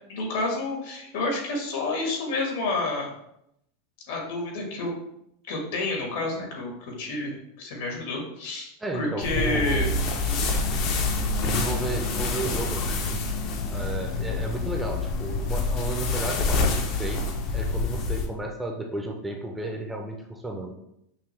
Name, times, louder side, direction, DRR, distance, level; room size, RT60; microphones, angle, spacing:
voice 1, 0.1-3.1 4.1-4.9 5.5-9.9, left 2 dB, 70° left, 0 dB, 1.5 m, -29 dB
voice 2, 8.8-9.9 11.4-13.2 13.7-16.7 17.0-17.3 17.5-20.7, right 1 dB, 10° right, 1 dB, 0.5 m, -33 dB
sound 1, 9.2-18.3, left 3 dB, 45° left, 0.6 m, -27 dB
5.6 x 2.2 x 3.3 m, 0.78 s
supercardioid pair, 135°, 0 cm